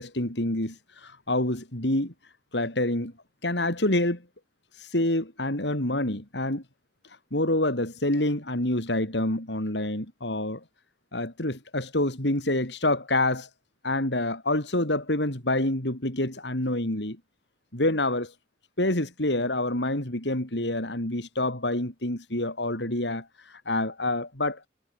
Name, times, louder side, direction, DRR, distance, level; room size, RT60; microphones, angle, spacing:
voice 1, 0.0-2.1 2.5-3.1 3.4-4.2 4.8-6.6 7.3-10.6 11.1-13.5 13.8-17.2 17.7-18.3 18.8-24.7, left 1 dB, 85° left, 5.5 m, -27 dB
head